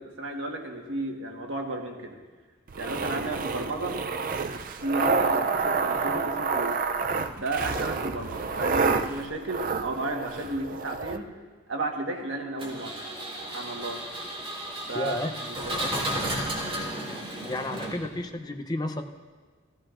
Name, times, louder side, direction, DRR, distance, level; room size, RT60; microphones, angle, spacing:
voice 1, 0.0-2.2 2.8-4.0 4.8-6.8 7.3-11.3 11.7-13.0 13.5-14.0 14.9-16.0, right 2 dB, 80° right, 2 dB, 1.4 m, -33 dB
sound 1, 2.7-11.2, right 4 dB, 45° right, 0.4 m, -28 dB
Engine, 12.6-18.3, right 1 dB, 25° right, 1.8 m, -33 dB
voice 2, 14.9-15.3 17.4-19.0, left 2 dB, 20° left, 5 dB, 0.6 m, -31 dB
15.5 x 15.0 x 2.5 m, 1.4 s
head